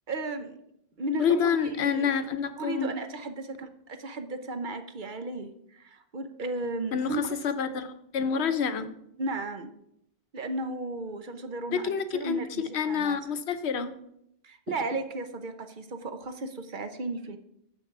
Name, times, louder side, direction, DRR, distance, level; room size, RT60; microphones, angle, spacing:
voice 1, 0.1-0.6 1.0-2.1 2.6-7.2 9.2-9.7 10.3-13.2 14.4-17.4, right 2 dB, 55° right, 8 dB, 0.9 m, -35 dB
voice 2, 1.2-3.0 6.9-8.9 11.8-13.9, left 7 dB, 85° left, 11 dB, 1.0 m, -28 dB
7.1 x 6.6 x 5.9 m, 0.76 s
omnidirectional pair, 1.1 m